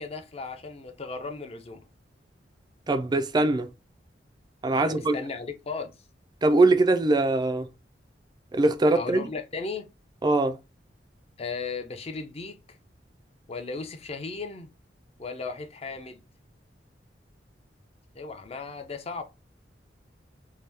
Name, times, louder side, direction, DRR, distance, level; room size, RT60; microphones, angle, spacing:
voice 1, 0.0-1.8 4.7-5.9 8.9-9.9 11.4-12.8 13.5-14.7 15.2-16.2 18.1-19.2, left 4 dB, 35° left, 0.5 m, -36 dB
voice 2, 2.9-3.7 4.6-5.2 6.4-7.7 8.5-9.3 10.2-10.6, right 2 dB, 25° right, 0.3 m, -22 dB
2.8 x 2.2 x 3.3 m
head